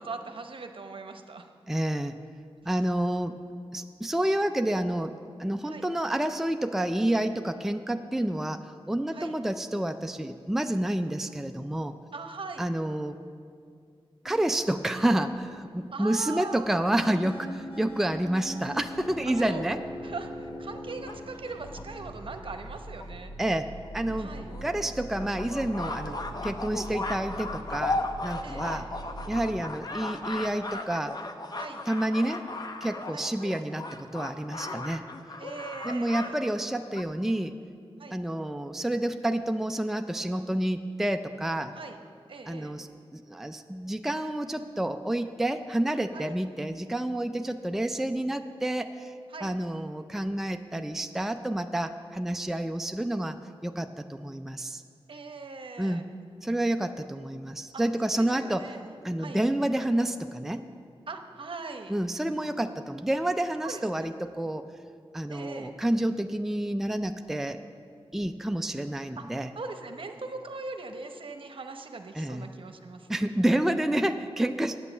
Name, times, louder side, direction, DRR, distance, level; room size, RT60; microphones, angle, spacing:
voice 1, 0.0-1.5 5.6-5.9 9.1-9.3 12.1-12.7 15.9-16.7 19.2-19.7 20.0-23.3 24.2-24.5 28.4-28.8 31.6-31.8 33.1-33.3 35.4-36.3 38.0-38.2 41.8-42.0 42.3-42.8 46.1-46.3 49.3-49.5 55.1-56.0 57.7-59.4 61.1-61.9 63.6-64.1 65.3-65.7 69.2-69.3 69.6-73.2, right 3 dB, 60° right, 6 dB, 0.8 m, -40 dB
voice 2, 1.7-2.2 2.6-3.4 3.7-11.9 12.6-13.2 14.2-19.8 23.4-28.9 29.3-31.2 31.9-32.5 32.8-35.0 35.8-37.6 38.1-41.7 42.5-42.9 43.1-49.1 49.4-53.4 53.6-54.8 55.8-56.1 56.4-58.7 59.0-60.6 61.9-64.7 65.1-67.6 68.1-69.5 72.2-72.5 73.1-74.8, right 1 dB, 5° right, 7 dB, 0.4 m, -29 dB
sound 1, 14.2-29.6, equal, 65° left, 1.9 m, -42 dB
sound 2, 20.2-21.8 22.6-22.7 23.0-23.1 23.4-23.5 23.8-23.9 24.5-36.3 36.6-37.0, left 2 dB, 40° left, 0.8 m, -36 dB
8.9 x 8.3 x 7.1 m, 2.3 s
wide cardioid pair, 65°, 10 cm